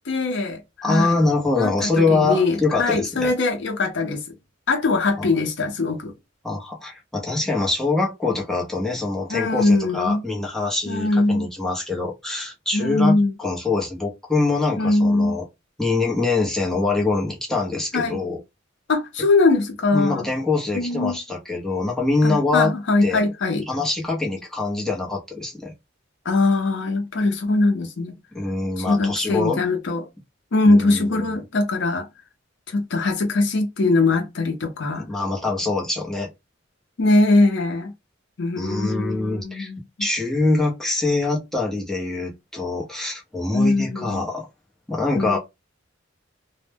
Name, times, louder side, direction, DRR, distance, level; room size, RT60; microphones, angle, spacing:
voice 1, 0.1-1.2 1.6-4.2 4.7-6.1 9.3-10.2 10.9-11.5 12.7-13.3 14.8-15.4 17.9-18.2 18.9-20.2 20.7-21.2 22.2-23.7 26.3-28.2 28.8-30.1 30.5-32.1 32.7-35.1 37.0-37.9 38.4-39.8 43.5-44.2 45.1-45.4, left 2 dB, 65° left, 0.6 m, -21 dB
voice 2, 0.8-3.3 5.2-5.3 6.4-15.4 15.8-18.4 19.9-22.7 23.0-23.2 23.7-25.7 28.3-29.6 30.6-31.3 34.9-36.3 38.6-39.7 40.0-44.5 44.9-45.4, left 3 dB, ahead, 0.6 m, -24 dB
2.1 x 2.0 x 3.2 m
head